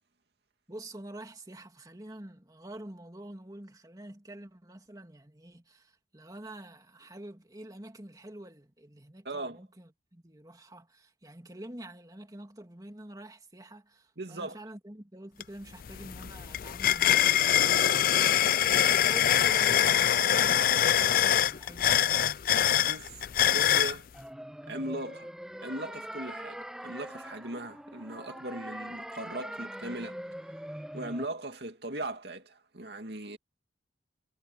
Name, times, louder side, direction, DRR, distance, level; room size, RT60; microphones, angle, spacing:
voice 1, 0.7-22.2, right 1 dB, 20° right, 2.6 m, -47 dB
voice 2, 9.2-9.6 14.2-14.6 22.8-23.2 23.5-24.1 24.7-25.3 25.6-30.7 30.9-33.4, right 1 dB, 65° right, 2.6 m, -39 dB
sound 1, 15.4-15.5 15.8-24.0, left 10 dB, 50° left, 0.4 m, -24 dB
sound 2, 24.1-31.3, equal, 5° right, 0.5 m, -42 dB
head